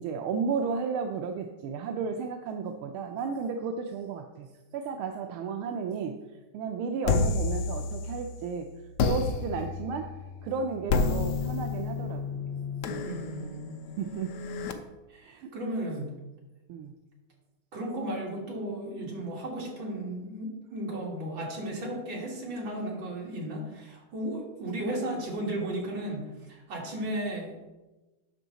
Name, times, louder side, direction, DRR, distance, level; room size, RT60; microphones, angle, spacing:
voice 1, 0.0-6.2 6.5-8.7 9.0-10.0 10.4-12.5 12.8-13.2 14.0-14.3 15.2-15.5 15.7-15.9 16.7-16.9, right 5 dB, 85° right, 4 dB, 1.5 m, -33 dB
sound 1, 7.0-8.4 9.0-14.7, left 4 dB, 85° left, 1.6 m, -30 dB
voice 2, 13.0-13.8 15.1-16.1 17.7-27.5, right 1 dB, 65° right, -3 dB, 3.0 m, -35 dB
10.5 x 6.3 x 4.0 m, 1.1 s
omnidirectional pair, 2.3 m